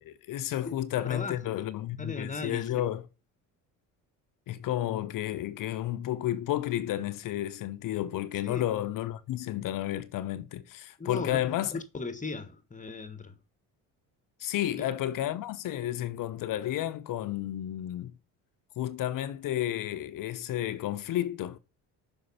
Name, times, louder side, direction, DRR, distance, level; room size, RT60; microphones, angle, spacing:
voice 1, 0.0-3.0 4.5-11.7 14.4-18.1 18.8-21.6, left 13 dB, 60° left, 0.8 m, -32 dB
voice 2, 1.1-1.6 2.0-2.9 8.4-8.7 11.0-13.4 14.7-14.8, left 3 dB, 20° left, 1.5 m, -38 dB
6.4 x 5.2 x 5.6 m
supercardioid pair, 85°, 37 cm